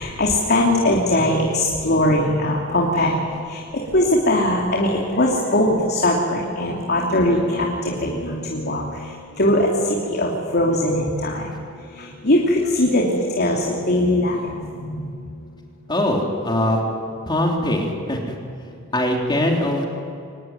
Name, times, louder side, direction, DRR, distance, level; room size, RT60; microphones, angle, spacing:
voice 1, 0.0-3.2 3.5-3.6 3.9-8.8 9.4-11.5 12.2-15.1, left 1 dB, 55° left, -1 dB, 3.0 m, -20 dB
voice 2, 15.9-16.8 17.3-18.3 18.9-19.9, left 1 dB, 25° left, 0 dB, 3.5 m, -21 dB
24.5 x 19.5 x 9.5 m, 2.5 s
head